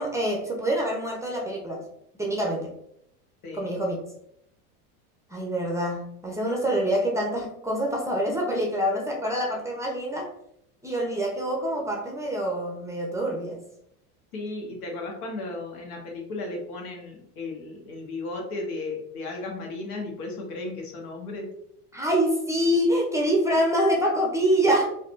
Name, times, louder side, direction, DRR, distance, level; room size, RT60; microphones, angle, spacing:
voice 1, 0.0-1.8 2.2-2.7 3.5-4.0 5.3-10.3 10.8-13.6 21.9-24.8, equal, 5° right, -1 dB, 0.5 m, -25 dB
voice 2, 3.4-3.8 14.3-21.5, left 2 dB, 75° left, 1 dB, 1.1 m, -35 dB
3.4 x 2.3 x 2.4 m, 0.74 s
hypercardioid pair, 95°, 45 cm